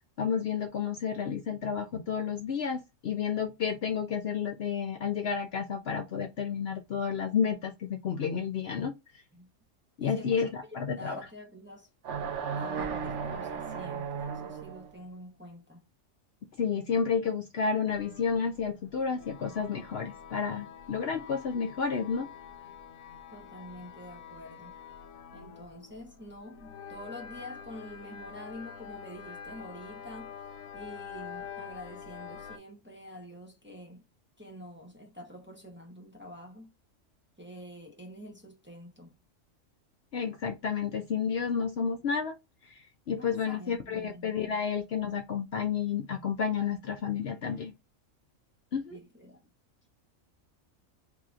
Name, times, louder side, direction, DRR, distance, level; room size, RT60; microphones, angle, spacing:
voice 1, 0.0-8.9 10.0-11.2 16.6-22.3 40.1-42.3 42.7-47.7 48.7-49.0, left 6 dB, 60° left, 0.8 m, -31 dB
voice 2, 10.0-10.5 11.0-11.9 12.5-15.8 23.3-24.7 25.3-30.4 30.7-34.0 34.4-36.7 37.4-39.1 43.2-44.6 48.9-49.4, left 1 dB, 10° right, 0.9 m, -47 dB
sound 1, 12.0-14.9, right 6 dB, 70° right, 0.9 m, -35 dB
sound 2, 17.9-32.6, left 7 dB, 80° left, 1.1 m, -46 dB
4.6 x 2.9 x 2.5 m
omnidirectional pair, 1.4 m